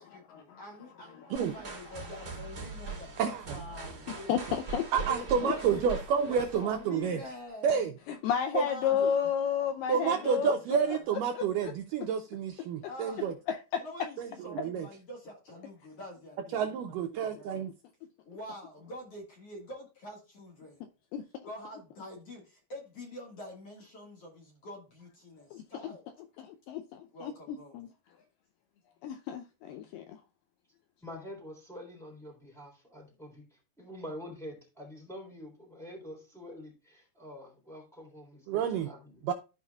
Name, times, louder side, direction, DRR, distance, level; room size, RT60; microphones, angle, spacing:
voice 1, 0.0-4.4 4.9-5.9 6.3-7.9 8.6-9.1 10.0-11.0 12.9-13.3 13.8-16.6 17.1-17.7 18.3-20.8 21.4-26.0 27.1-27.9, left 1 dB, 45° left, 2.3 m, -46 dB
sound 1, 1.3-7.2, right 4 dB, 25° right, 3.7 m, -42 dB
voice 2, 3.2-3.6 4.9-7.2 7.6-7.9 8.5-8.7 9.0-9.1 9.9-13.3 14.2-14.9 16.5-17.7 38.5-38.9 39.2-39.3, right 7 dB, 80° right, 1.9 m, -29 dB
sound 2, 3.3-7.3, right 7 dB, 65° right, 1.9 m, -50 dB
voice 3, 4.3-5.0 5.4-5.5 8.2-10.5 11.4-11.7 13.5-13.8 21.1-21.2 25.5-25.6 26.4-27.9 29.0-30.0, left 8 dB, 80° left, 2.1 m, -32 dB
voice 4, 31.0-39.2, equal, ahead, 3.0 m, -46 dB
14.5 x 5.0 x 2.3 m
omnidirectional pair, 4.4 m